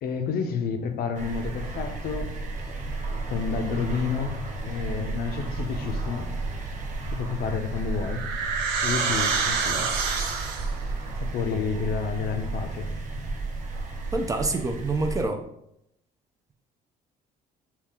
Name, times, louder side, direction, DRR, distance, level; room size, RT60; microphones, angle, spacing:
voice 1, 0.0-2.3 3.1-6.3 7.1-8.3 8.8-10.0 11.2-12.9, left 5 dB, 65° left, 0.6 m, -30 dB
sound 1, 1.1-15.3, right 3 dB, 50° right, 0.9 m, -33 dB
sound 2, 7.4-10.9, right 5 dB, 85° right, 0.8 m, -27 dB
voice 2, 14.1-15.4, right 3 dB, 20° right, 0.4 m, -26 dB
5.6 x 2.4 x 3.6 m
cardioid pair, 110°, 17 cm